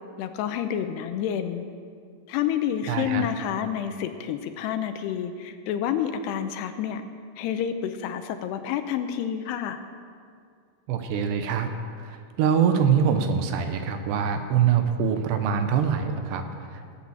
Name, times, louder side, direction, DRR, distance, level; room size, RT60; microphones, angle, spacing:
voice 1, 0.2-1.7 2.3-7.0 7.4-9.8, left 9 dB, 80° left, 8 dB, 2.7 m, -29 dB
voice 2, 2.9-3.3 10.9-11.7 12.0-16.9, right 7 dB, 80° right, 7 dB, 3.0 m, -24 dB
18.0 x 8.6 x 7.4 m, 2.2 s
omnidirectional pair, 5.0 m